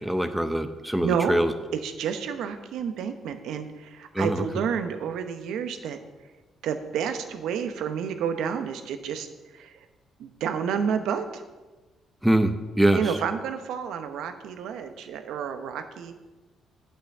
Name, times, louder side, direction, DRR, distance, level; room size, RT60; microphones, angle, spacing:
voice 1, 0.0-1.5 4.1-4.4 12.2-13.0, right 1 dB, 5° right, 9 dB, 0.6 m, -23 dB
voice 2, 1.0-1.4 1.7-6.0 6.6-9.3 9.5-9.7 10.2-11.4 12.9-16.1, right 7 dB, 85° right, 8 dB, 0.9 m, -30 dB
8.9 x 5.7 x 6.6 m, 1.2 s
cardioid pair, 90°, 0 cm